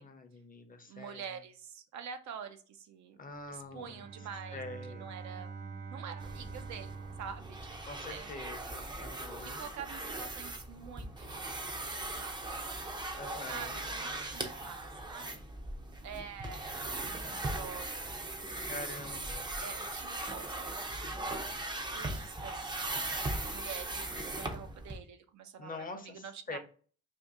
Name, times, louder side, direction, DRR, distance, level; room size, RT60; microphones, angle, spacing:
voice 1, 0.0-1.2 3.2-4.0 4.5-5.1 7.9-9.6 13.1-13.8 18.7-19.6 25.6-26.6, left 3 dB, 30° left, 6 dB, 0.6 m, -45 dB
voice 2, 0.9-3.2 3.5-4.6 4.9-5.6 5.9-6.9 7.2-8.4 9.4-12.7 13.5-15.4 16.0-19.3 19.6-21.4 21.9-22.7 23.3-26.6, right 7 dB, 65° right, 8 dB, 0.6 m, -47 dB
Bowed string instrument, 3.6-8.5, right 5 dB, 85° right, 1.1 m, -46 dB
sound 1, 6.2-25.0, right 2 dB, 15° right, 0.5 m, -39 dB
2.6 x 2.5 x 3.6 m, 0.42 s
cardioid pair, 90°, 30 cm